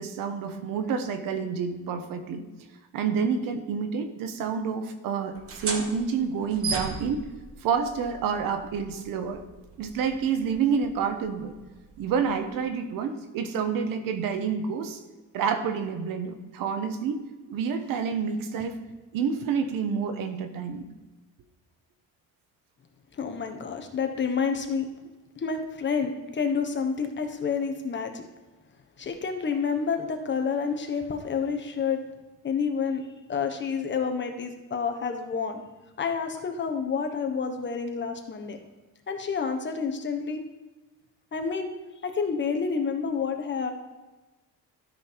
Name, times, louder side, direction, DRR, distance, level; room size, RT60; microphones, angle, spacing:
voice 1, 0.0-2.4 2.9-7.3 7.6-9.4 9.8-11.6 12.0-15.0 15.3-18.8 19.1-20.8, right 6 dB, 85° right, 8 dB, 1.1 m, -28 dB
sound 1, 5.3-12.6, right 4 dB, 45° right, 1.4 m, -38 dB
voice 2, 23.2-24.9 25.4-28.2 29.0-32.0 32.4-33.0 33.3-35.6 36.0-38.6 39.1-40.4 41.3-41.7 42.0-43.7, left 5 dB, 35° left, 5 dB, 1.3 m, -29 dB
13.0 x 5.4 x 4.5 m, 1.2 s
cardioid pair, 125°, 33 cm